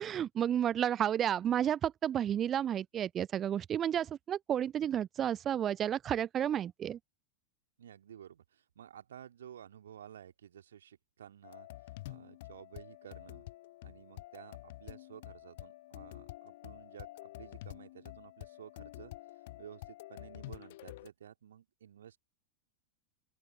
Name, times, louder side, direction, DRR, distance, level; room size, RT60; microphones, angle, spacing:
voice 1, 0.0-7.0, right 10 dB, 25° right, 0.4 m, -31 dB
voice 2, 7.8-13.5 13.8-19.1 19.6-22.2, right 9 dB, 65° right, 2.2 m, -53 dB
sound 1, 11.4-21.1, left 18 dB, 55° left, 0.9 m, -49 dB
open air
figure-of-eight pair, 90°, 0 cm